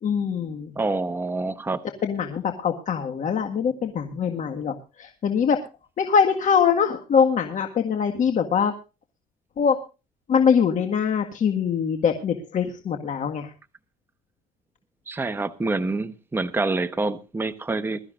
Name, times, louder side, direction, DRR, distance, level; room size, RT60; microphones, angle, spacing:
voice 1, 0.0-0.8 2.0-5.6 6.0-8.7 9.6-9.8 10.3-13.5, left 7 dB, 50° left, 1.8 m, -23 dB
voice 2, 0.8-1.8 15.1-18.0, right 3 dB, 15° right, 1.0 m, -27 dB
22.0 x 13.0 x 2.5 m
cardioid pair, 110°, 17 cm